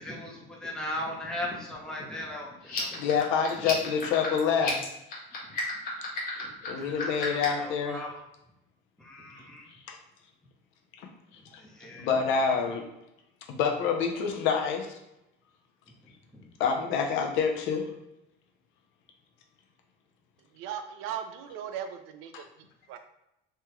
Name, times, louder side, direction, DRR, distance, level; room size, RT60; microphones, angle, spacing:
voice 1, 0.0-3.0 6.4-6.5 6.7-8.2 9.0-9.7 11.5-12.2 16.3-16.5, left 1 dB, 5° left, -4 dB, 0.6 m, -38 dB
sound 1, 2.6-7.6, left 4 dB, 45° left, 1.0 m, -35 dB
voice 2, 3.0-4.8 6.3-8.0 9.9-10.0 11.5-11.6 12.0-12.8 13.5-15.0 16.6-17.9, left 6 dB, 70° left, 2 dB, 0.6 m, -27 dB
voice 3, 20.6-22.5 22.9-23.0, right 9 dB, 90° right, 7 dB, 0.4 m, -37 dB
3.3 x 2.3 x 3.0 m, 0.87 s
cardioid pair, 165°, 21 cm